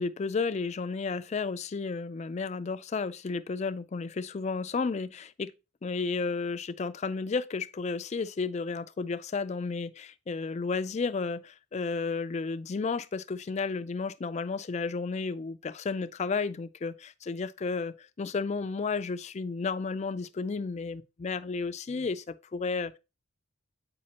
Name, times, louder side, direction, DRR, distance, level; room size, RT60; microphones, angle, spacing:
voice 1, 0.0-5.5 5.8-23.0, left 4 dB, 30° left, 0.3 m, -32 dB
8.5 x 5.0 x 2.8 m
head